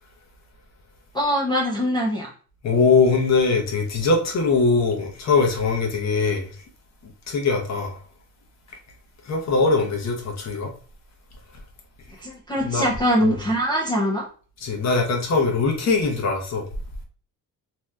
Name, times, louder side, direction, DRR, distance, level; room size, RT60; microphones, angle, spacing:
voice 1, 1.1-2.3 12.2-14.3, equal, 15° left, 0.4 m, -23 dB
voice 2, 2.6-6.6 7.3-8.0 9.2-10.7 12.6-12.9 13.2-13.3 14.6-16.7, left 4 dB, 45° left, 0.8 m, -21 dB
2.7 x 2.3 x 3.3 m
cardioid pair, 155°, 36 cm